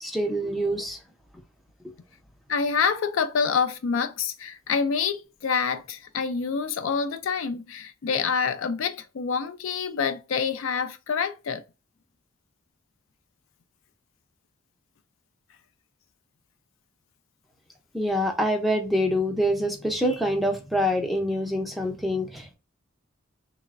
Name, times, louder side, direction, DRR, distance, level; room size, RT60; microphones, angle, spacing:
voice 1, 0.0-1.0 17.9-22.6, equal, ahead, 0.4 m, -25 dB
voice 2, 2.5-11.6, left 6 dB, 65° left, 0.4 m, -27 dB
3.2 x 2.0 x 2.3 m
head